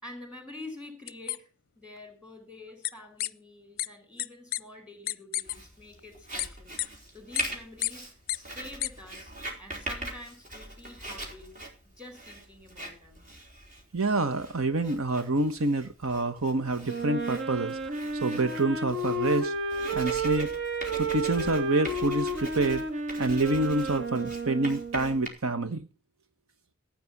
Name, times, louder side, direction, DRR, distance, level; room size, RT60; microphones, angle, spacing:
voice 1, 0.0-1.5 1.7-6.8 7.1-8.1 8.3-9.3 9.6-11.5 12.0-13.2, left 2 dB, 5° right, 5 dB, 4.9 m, -47 dB
sound 1, 1.1-1.4 2.8-2.9 3.2-3.3 3.8-3.9 4.2-4.3 4.5-4.6 5.1-5.6 6.4-6.5 6.8-6.9 7.4-7.5 7.8-7.9 8.3-8.4 8.8-8.9, left 15 dB, 45° left, 0.6 m, -29 dB
Writing, 5.4-25.3, right 1 dB, 35° right, 3.9 m, -42 dB
voice 2, 13.9-17.8 18.2-19.5 19.9-20.5 20.9-22.8 23.2-25.9, right 2 dB, 80° right, 10 dB, 1.2 m, -27 dB
Wind instrument woodwind instrument, 16.8-25.2, right 2 dB, 60° right, 2.1 m, -32 dB
15.5 x 8.9 x 5.9 m, 0.36 s
head